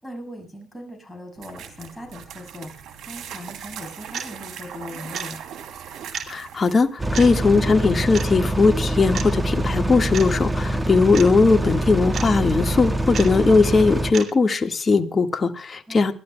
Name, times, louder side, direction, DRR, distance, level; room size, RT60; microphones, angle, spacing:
voice 1, 0.0-5.4 15.9-16.1, left 1 dB, 5° left, 1 dB, 6.9 m, -39 dB
sound 1, 1.4-7.0, right 8 dB, 80° right, 2.9 m, -39 dB
sound 2, 4.1-4.3 5.1-5.3 6.1-6.3 7.1-7.3 8.1-8.3 9.1-9.3 10.1-10.3 11.1-11.3 12.1-12.3 13.1-13.3 14.1-14.3, right 7 dB, 60° right, 2.7 m, -31 dB
voice 2, 6.3-16.1, left 4 dB, 35° left, 5 dB, 1.7 m, -19 dB
sound 3, 7.0-14.1, right 1 dB, 15° right, 1.7 m, -24 dB
30.0 x 13.0 x 2.3 m, 0.32 s
cardioid pair, 90°, 0 cm